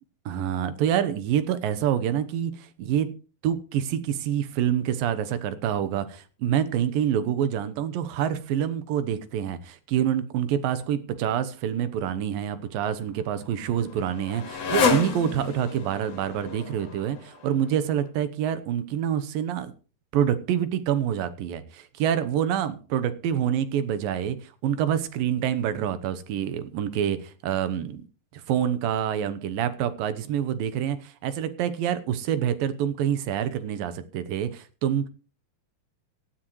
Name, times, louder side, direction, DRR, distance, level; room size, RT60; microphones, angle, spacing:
voice 1, 0.3-3.1 3.4-19.7 20.1-28.0 28.3-35.1, right 9 dB, 80° right, 12 dB, 2.7 m, -27 dB
Motorcycle, 12.7-18.1, left 5 dB, 50° left, 2.9 m, -31 dB
17.0 x 13.0 x 3.2 m, 0.36 s
omnidirectional pair, 4.1 m